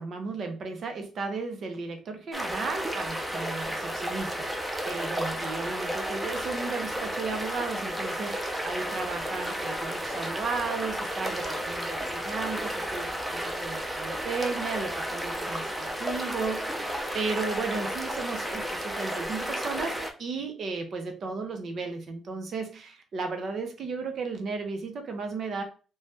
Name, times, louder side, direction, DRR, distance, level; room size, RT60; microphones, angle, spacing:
voice 1, 0.0-25.6, right 4 dB, 60° right, 5 dB, 0.7 m, -35 dB
sound 1, 2.3-20.1, equal, 5° right, 0.6 m, -32 dB
3.2 x 2.3 x 2.7 m, 0.35 s
cardioid pair, 90°, 0 cm